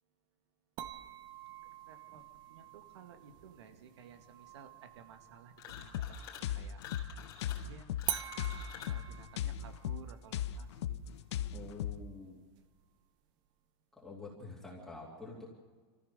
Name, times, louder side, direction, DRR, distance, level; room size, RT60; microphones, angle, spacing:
sound 1, 0.8-6.4 8.1-13.1, right 12 dB, 30° right, 0.9 m, -46 dB
voice 1, 1.9-6.8 7.7-7.9 8.9-11.0, right 7 dB, 85° right, 8 dB, 2.2 m, -56 dB
sound 2, 5.5-6.5 6.8-9.0, left 8 dB, 30° left, 3.5 m, -49 dB
sound 3, 5.7-12.0, left 10 dB, 85° left, 0.9 m, -38 dB
voice 2, 11.5-12.4 13.9-15.5, left 3 dB, 5° left, -5 dB, 2.8 m, -47 dB
26.5 x 14.5 x 6.8 m, 1.5 s
supercardioid pair, 175°, 14 cm